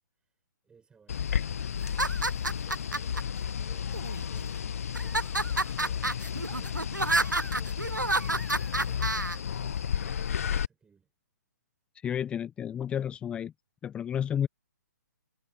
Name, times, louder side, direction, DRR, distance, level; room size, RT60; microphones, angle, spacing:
voice 1, 0.6-1.6 2.6-4.5 5.0-6.8 7.4-11.1, right 5 dB, 10° right, 6.0 m, -61 dB
sound 1, 1.1-10.7, left 8 dB, 50° left, 1.6 m, -32 dB
sound 2, 1.8-3.2 3.9-4.5 4.9-9.4, right 2 dB, 90° right, 0.7 m, -29 dB
voice 2, 11.9-13.5 13.8-14.5, left 9 dB, 10° left, 0.8 m, -31 dB
figure-of-eight pair, 135°, 10 cm